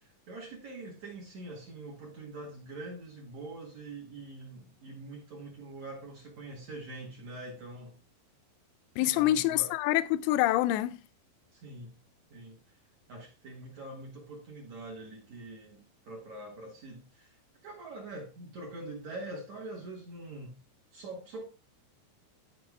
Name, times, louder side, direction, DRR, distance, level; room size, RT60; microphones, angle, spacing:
voice 1, 0.0-8.0 9.0-9.7 11.5-12.0 12.3-12.6 13.1-20.6 20.9-21.4, right 2 dB, 55° right, 2.1 m, -44 dB
voice 2, 9.0-11.0, left 14 dB, 85° left, 2.3 m, -26 dB
12.0 x 4.9 x 3.5 m
omnidirectional pair, 5.0 m